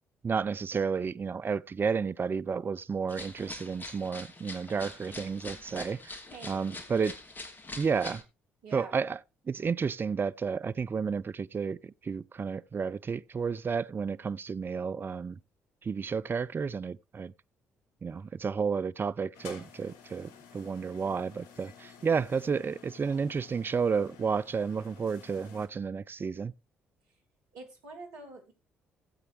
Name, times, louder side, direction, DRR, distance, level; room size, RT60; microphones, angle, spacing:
voice 1, 0.2-6.1 6.4-7.1 7.8-8.2 8.7-9.2 9.5-15.4 15.8-17.3 18.0-26.5, right 5 dB, 35° right, 0.6 m, -31 dB
sound 1, 3.1-8.2, left 2 dB, 30° left, 2.9 m, -44 dB
voice 2, 6.3-6.8 8.6-8.9 27.5-28.5, right 3 dB, 70° right, 3.3 m, -46 dB
sound 2, 19.3-25.7, left 7 dB, 70° left, 1.5 m, -52 dB
17.0 x 8.1 x 3.0 m
figure-of-eight pair, 45°, 6 cm